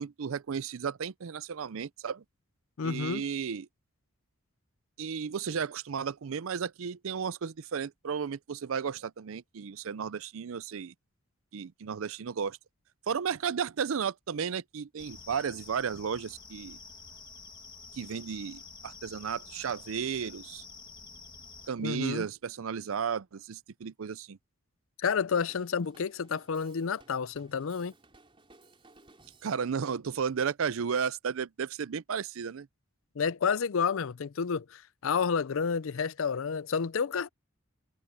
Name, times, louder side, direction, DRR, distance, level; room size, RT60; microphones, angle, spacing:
voice 1, 0.0-2.2 2.8-3.7 5.0-10.9 11.5-12.6 13.1-16.8 18.0-20.6 21.7-24.4 29.4-32.7, right 6 dB, 70° right, 0.5 m, -34 dB
voice 2, 2.8-3.2 21.8-22.3 25.0-27.9 33.2-37.3, left 6 dB, 70° left, 0.5 m, -30 dB
sound 1, 15.0-21.7, left 4 dB, 20° left, 1.9 m, -49 dB
Drum kit, 25.5-29.7, right 2 dB, 25° right, 4.1 m, -59 dB
head